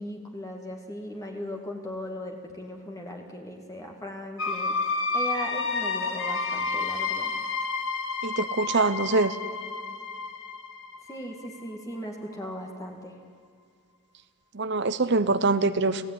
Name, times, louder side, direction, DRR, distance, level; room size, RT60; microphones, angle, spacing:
voice 1, 0.0-7.3 11.1-13.2, equal, 15° left, 1 dB, 2.1 m, -38 dB
sound 1, 4.4-12.0, left 4 dB, 60° left, 2.3 m, -30 dB
voice 2, 8.2-9.4 14.5-16.0, right 3 dB, 55° right, 12 dB, 0.9 m, -24 dB
29.5 x 17.0 x 9.9 m, 2.1 s
head